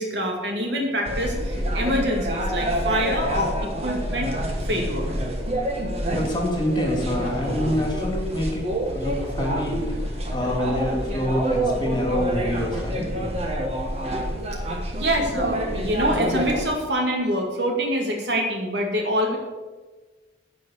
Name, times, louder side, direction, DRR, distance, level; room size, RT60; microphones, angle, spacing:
voice 1, 0.0-4.3 4.6-5.1 14.9-19.4, equal, 80° right, 1 dB, 2.3 m, -25 dB
sound 1, 1.1-16.6, equal, 35° right, 1.6 m, -27 dB
voice 2, 6.1-13.1, left 1 dB, 25° left, 0 dB, 2.2 m, -27 dB
10.5 x 5.5 x 8.6 m, 1.3 s
head